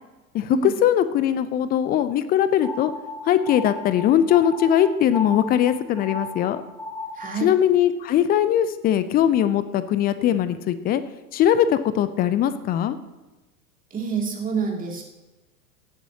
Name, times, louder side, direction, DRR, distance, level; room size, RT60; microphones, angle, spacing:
voice 1, 0.3-2.9 3.3-6.6 7.4-11.0 11.3-13.0, left 10 dB, 20° left, 13 dB, 0.5 m, -20 dB
sound 1, 2.6-7.5, left 2 dB, 5° left, 1.2 m, -35 dB
voice 2, 7.1-7.5 13.9-15.0, right 6 dB, 20° right, 0 dB, 2.6 m, -27 dB
17.0 x 10.0 x 2.9 m, 1.1 s
figure-of-eight pair, 90°, 45 cm